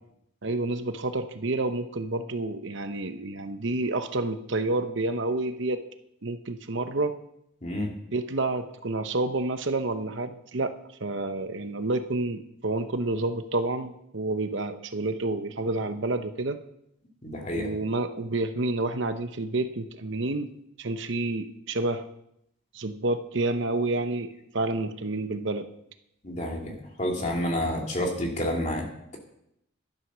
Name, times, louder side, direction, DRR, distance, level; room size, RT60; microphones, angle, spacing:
voice 1, 0.4-5.8 6.2-7.2 8.1-10.7 11.0-16.6 17.5-20.5 20.8-22.0 22.7-25.7, right 2 dB, 60° right, 9 dB, 0.9 m, -29 dB
voice 2, 17.2-17.7 26.2-28.9, left 1 dB, 35° left, 0 dB, 2.7 m, -29 dB
12.0 x 11.5 x 6.2 m, 0.78 s
head